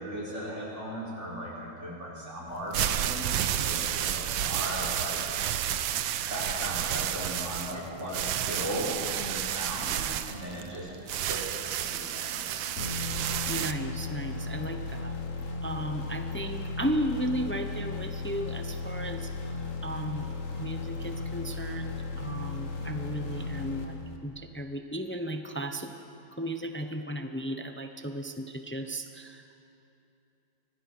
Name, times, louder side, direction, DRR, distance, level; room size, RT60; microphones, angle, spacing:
voice 1, 0.0-5.2 6.3-12.4, equal, 35° right, -5 dB, 4.6 m, -37 dB
sound 1, 2.5-13.7, right 11 dB, 90° right, 1.5 m, -31 dB
sound 2, 12.8-24.5, left 3 dB, 45° left, 1.8 m, -35 dB
voice 2, 13.5-15.2 15.6-19.3 19.8-20.3 20.6-25.9 26.4-29.5, right 1 dB, 15° left, 6 dB, 0.4 m, -35 dB
25.0 x 19.0 x 6.1 m, 2.8 s
omnidirectional pair, 2.0 m